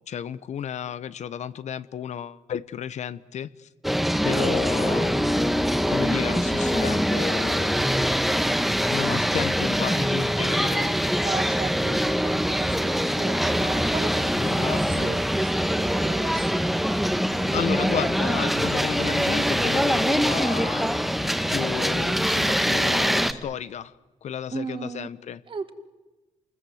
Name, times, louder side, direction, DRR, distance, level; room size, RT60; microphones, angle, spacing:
voice 1, 0.0-3.7 4.2-8.1 8.9-10.9 14.4-15.1 17.5-24.0 24.2-25.4, left 9 dB, 60° left, 0.8 m, -33 dB
sound 1, 3.8-23.3, equal, ahead, 1.3 m, -23 dB
voice 2, 4.2-4.6 11.2-16.7 24.5-25.1 25.5-25.7, right 5 dB, 40° right, 2.2 m, -36 dB
28.0 x 21.0 x 7.9 m
cardioid pair, 110°, 13 cm